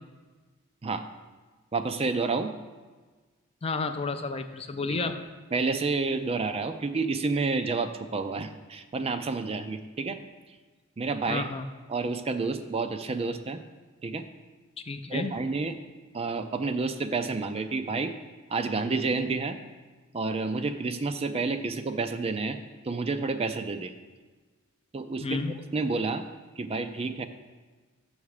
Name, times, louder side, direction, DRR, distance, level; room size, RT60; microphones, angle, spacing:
voice 1, 1.7-2.5 4.9-5.1 5.5-10.2 11.0-11.5 11.9-13.6 14.0-14.3 15.1-15.7 16.1-18.1 18.5-19.6 20.1-22.6 22.8-23.9 24.9-25.3 25.7-26.3 26.6-27.2, right 3 dB, 30° right, 8 dB, 0.4 m, -29 dB
voice 2, 3.6-5.2 11.3-11.7 14.9-15.3 25.2-25.5, left 3 dB, 30° left, 8 dB, 0.5 m, -31 dB
7.2 x 5.7 x 6.5 m, 1.3 s
head